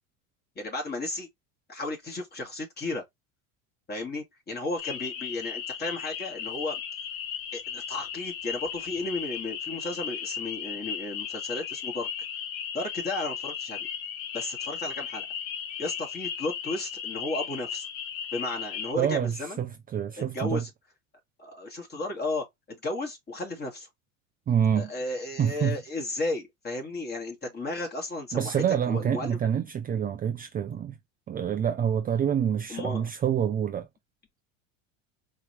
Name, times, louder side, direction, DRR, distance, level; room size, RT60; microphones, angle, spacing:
voice 1, 0.6-1.3 1.7-3.0 3.9-6.8 7.5-12.1 12.7-13.9 14.3-15.3 15.8-17.9 18.3-19.6 20.2-20.7 21.4-23.9 24.7-29.5 32.7-33.1, left 2 dB, 25° left, 2.5 m, -34 dB
sound 1, 4.8-18.9, left 8 dB, 60° left, 1.3 m, -36 dB
voice 2, 19.0-20.6 24.5-24.9 25.4-25.8 28.3-31.0 31.3-33.9, right 8 dB, 25° right, 0.5 m, -27 dB
4.7 x 3.1 x 3.2 m
supercardioid pair, 105°, 39 cm